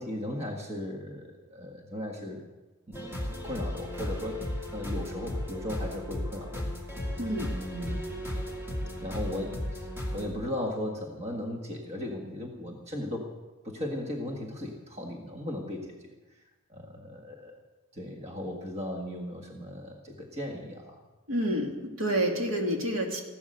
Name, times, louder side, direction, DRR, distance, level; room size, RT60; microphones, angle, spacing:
voice 1, 0.0-2.5 2.9-4.4 4.7-6.7 7.5-8.0 9.0-13.3 13.6-16.1 16.7-17.6 17.9-21.0, left 1 dB, 30° right, 1 dB, 1.6 m, -37 dB
sound 1, 2.9-10.3, left 1 dB, 10° right, 2.3 m, -35 dB
voice 2, 7.2-7.5 21.3-23.2, right 1 dB, 65° right, 1 dB, 2.5 m, -28 dB
15.5 x 12.0 x 6.7 m, 1.2 s
head